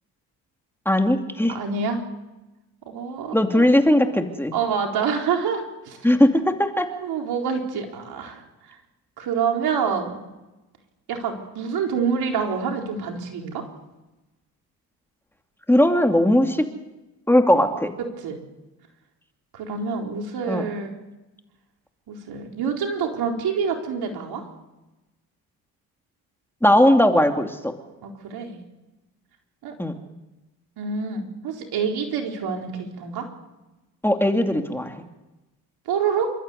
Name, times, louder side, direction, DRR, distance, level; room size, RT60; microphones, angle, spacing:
voice 1, 0.9-1.6 3.3-4.5 6.0-6.9 15.7-16.6 17.3-18.0 20.5-20.7 26.6-27.7 29.8-29.9 34.0-34.9, left 1 dB, 5° left, 4 dB, 2.7 m, -18 dB
voice 2, 1.5-2.0 2.9-3.7 4.5-6.0 7.0-8.4 9.2-10.2 11.1-13.7 18.0-18.4 19.5-20.9 22.1-24.4 28.0-28.6 29.6-29.8 30.8-33.3 35.9-36.3, right 6 dB, 70° right, 2 dB, 4.2 m, -27 dB
28.5 x 13.5 x 8.1 m, 1.1 s
supercardioid pair, 65°, 39 cm